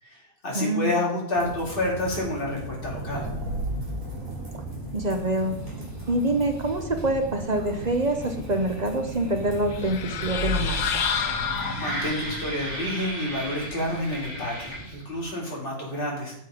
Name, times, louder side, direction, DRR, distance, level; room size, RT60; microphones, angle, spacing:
voice 1, 0.0-3.3 11.7-16.3, left 1 dB, 35° left, -4 dB, 2.6 m, -29 dB
voice 2, 0.5-0.9 4.5-4.6 4.9-5.6 6.1-11.0, right 1 dB, 40° right, 5 dB, 0.6 m, -26 dB
sound 1, 1.4-15.3, right 1 dB, 15° right, 4.1 m, -37 dB
sound 2, 2.5-15.0, equal, 70° right, 1.6 m, -37 dB
sound 3, 9.7-12.3, left 8 dB, 80° left, 1.2 m, -29 dB
7.7 x 7.3 x 4.9 m, 0.75 s
omnidirectional pair, 1.6 m